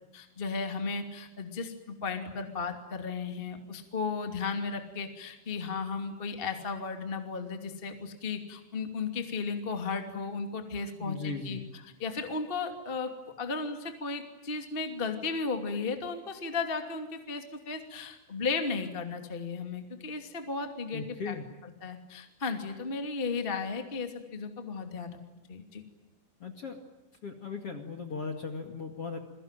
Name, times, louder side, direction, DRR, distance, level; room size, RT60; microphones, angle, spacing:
voice 1, 0.1-11.6 12.0-21.4 21.8-25.2 25.5-25.8, left 4 dB, 30° left, 5 dB, 1.0 m, -35 dB
voice 2, 11.0-11.6 20.9-21.5 26.4-26.8 27.2-29.2, left 4 dB, 45° left, 4 dB, 1.9 m, -37 dB
29.0 x 22.5 x 9.1 m, 0.96 s
omnidirectional pair, 5.9 m